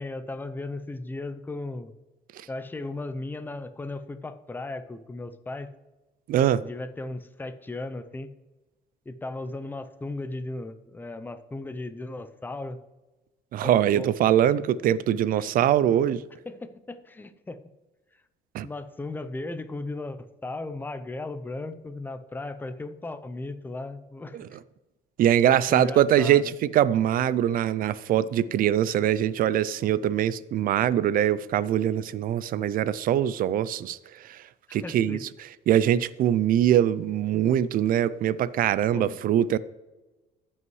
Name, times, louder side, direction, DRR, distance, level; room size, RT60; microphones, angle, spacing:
voice 1, 0.0-1.9 2.5-5.7 6.6-8.3 9.1-12.8 13.6-14.1 15.4-15.5 16.5-17.6 18.6-24.4 25.7-26.5 34.7-35.2 38.9-39.2, left 2 dB, 10° left, 0.6 m, -36 dB
voice 2, 6.3-6.6 13.5-16.2 18.5-18.7 24.3-24.5 25.2-34.4 34.7-35.3 35.7-39.6, right 11 dB, 55° right, 0.4 m, -23 dB
14.5 x 5.5 x 3.2 m
cardioid pair, 110°, 17 cm